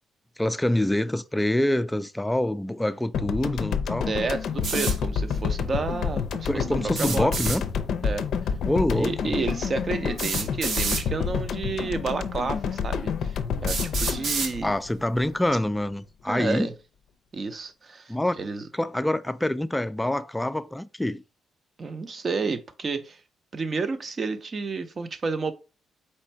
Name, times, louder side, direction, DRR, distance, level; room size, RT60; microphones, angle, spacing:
voice 1, 0.4-4.1 6.5-7.6 8.7-9.3 14.6-16.7 18.1-18.4 18.7-21.2, left 1 dB, 10° left, 0.4 m, -26 dB
sound 1, 3.1-15.6, left 6 dB, 70° left, 0.5 m, -29 dB
voice 2, 4.1-7.3 8.0-8.2 9.0-14.7 16.3-16.7 17.3-18.6 21.8-23.2 23.5-25.5, right 4 dB, 40° right, 0.7 m, -30 dB
sound 2, 4.6-5.0 6.9-7.6 9.0-9.1 10.2-11.0 12.0-12.1 12.8-12.9 13.7-14.5, right 4 dB, 65° right, 1.0 m, -29 dB
4.3 x 2.5 x 4.4 m
cardioid pair, 90°, 0 cm